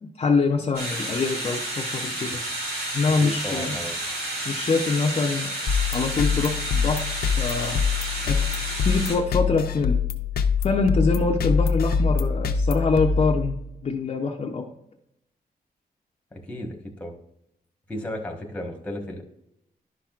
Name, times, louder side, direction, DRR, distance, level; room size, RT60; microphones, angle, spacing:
voice 1, 0.0-2.4 2.9-3.8 4.5-5.5 5.9-7.1 7.4-7.8 8.3-8.5 8.8-10.0 10.6-13.6 13.8-14.7, left 4 dB, 40° left, 1 dB, 0.6 m, -24 dB
sound 1, 0.7-9.1, right 1 dB, 80° right, 2.7 m, -31 dB
voice 2, 3.2-3.9 16.3-17.1 17.9-19.2, left 1 dB, 10° left, 1 dB, 1.2 m, -34 dB
sound 2, 5.7-13.8, left 5 dB, 75° left, 0.6 m, -25 dB
11.0 x 5.8 x 2.4 m, 0.82 s
wide cardioid pair, 165°, 16 cm